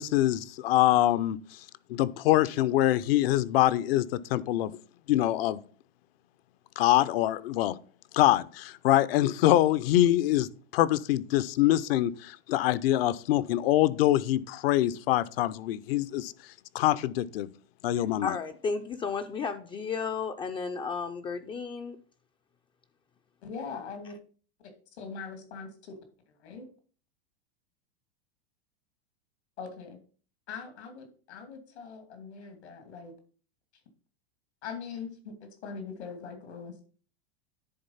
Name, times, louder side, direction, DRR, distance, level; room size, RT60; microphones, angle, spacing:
voice 1, 0.0-1.4 1.9-4.7 5.1-5.6 6.8-7.7 8.1-10.5 10.7-16.3 16.7-17.5 17.8-18.4, left 14 dB, 65° left, 0.7 m, -24 dB
voice 2, 17.9-22.0, left 5 dB, 15° left, 0.4 m, -33 dB
voice 3, 23.4-24.1 24.9-26.0 26.4-26.7 29.6-30.0 30.5-33.1 34.6-36.8, left 5 dB, 90° left, 2.7 m, -41 dB
10.5 x 3.9 x 5.6 m
supercardioid pair, 135°, 32 cm